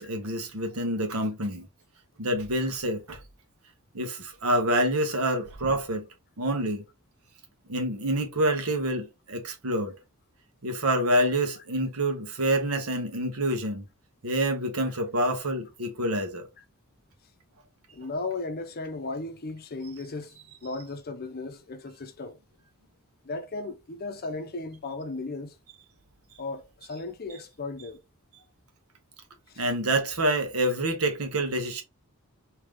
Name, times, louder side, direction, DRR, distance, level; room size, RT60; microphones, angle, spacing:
voice 1, 0.0-1.7 2.2-3.2 3.9-6.1 6.4-6.8 7.7-9.9 10.6-13.8 14.2-16.4 29.6-31.8, right 1 dB, 75° right, 1.0 m, -27 dB
voice 2, 17.9-22.4 23.2-25.5 26.4-28.0 29.5-29.6, left 3 dB, 45° left, 0.6 m, -36 dB
3.3 x 2.8 x 3.5 m
head